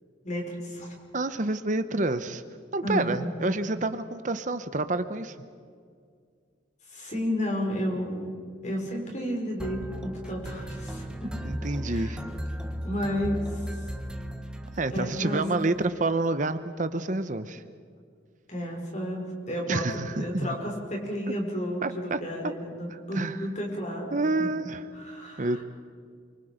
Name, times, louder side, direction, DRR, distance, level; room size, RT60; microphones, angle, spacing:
voice 1, 0.2-0.9 2.8-3.3 6.9-8.3 8.6-11.3 11.9-12.1 12.8-13.9 14.9-15.4 18.5-24.1 24.4-24.5 24.9-25.6, equal, 40° left, 0 dB, 5.7 m, -32 dB
voice 2, 1.1-2.4 2.7-5.4 11.4-12.2 14.8-17.6 19.7-20.6 21.8-22.5 23.1-23.4 24.1-24.8 25.4-25.6, right 2 dB, 45° right, 11 dB, 0.9 m, -28 dB
sound 1, 9.6-15.3, equal, 5° right, 1.2 m, -36 dB
28.5 x 25.0 x 5.2 m, 2.1 s
head